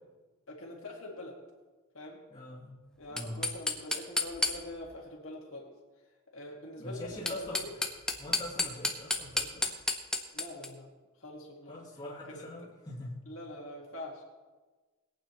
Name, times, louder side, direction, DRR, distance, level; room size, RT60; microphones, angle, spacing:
voice 1, 0.5-1.4 1.9-2.2 3.0-5.7 6.3-7.8 10.3-10.9 11.2-11.8 12.3-12.5 13.3-14.2, left 1 dB, 65° left, -2 dB, 2.0 m, -44 dB
voice 2, 2.3-2.7 3.1-3.4 6.8-7.6 8.2-9.7 11.7-13.3, left 1 dB, 20° left, -6 dB, 2.7 m, -42 dB
sound 1, 3.0-4.9 7.1-10.7, left 2 dB, 5° left, 0.8 m, -32 dB
21.0 x 8.9 x 3.1 m, 1.3 s
head